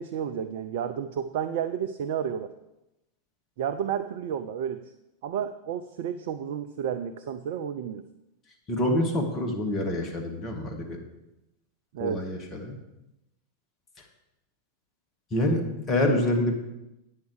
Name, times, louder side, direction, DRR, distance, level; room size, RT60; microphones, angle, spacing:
voice 1, 0.0-2.5 3.6-4.8 5.2-8.0 11.9-12.2, right 8 dB, 50° right, 9 dB, 0.4 m, -31 dB
voice 2, 8.7-11.0 12.0-12.8 15.3-16.5, left 1 dB, 25° left, 2 dB, 1.7 m, -26 dB
9.2 x 6.5 x 4.9 m, 0.91 s
figure-of-eight pair, 90°, 0 cm